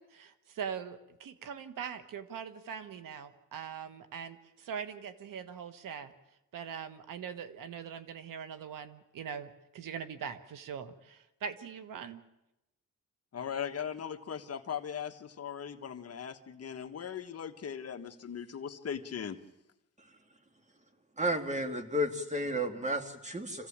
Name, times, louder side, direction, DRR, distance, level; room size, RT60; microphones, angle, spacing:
voice 1, 0.0-6.1 6.5-12.2, right 7 dB, 80° right, 11 dB, 1.5 m, -42 dB
voice 2, 13.3-19.4, left 8 dB, 50° left, 7 dB, 1.5 m, -39 dB
voice 3, 21.2-23.7, equal, 20° right, 6 dB, 2.6 m, -32 dB
26.5 x 16.0 x 8.8 m, 0.91 s
cardioid pair, 105°, 32 cm